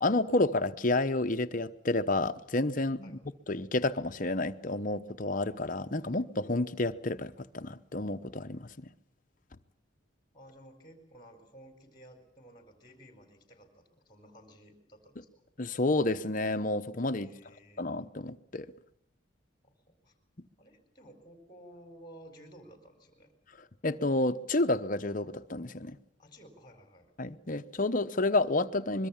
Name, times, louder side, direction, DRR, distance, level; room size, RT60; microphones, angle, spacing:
voice 1, 0.0-3.2 3.5-8.7 15.6-17.3 17.8-18.7 23.8-26.0 27.2-29.1, left 2 dB, 40° left, 1.0 m, -30 dB
voice 2, 10.3-15.4 17.2-17.9 19.6-20.2 20.6-23.3 26.2-27.1, equal, 20° left, 4.4 m, -54 dB
24.5 x 22.5 x 7.3 m
head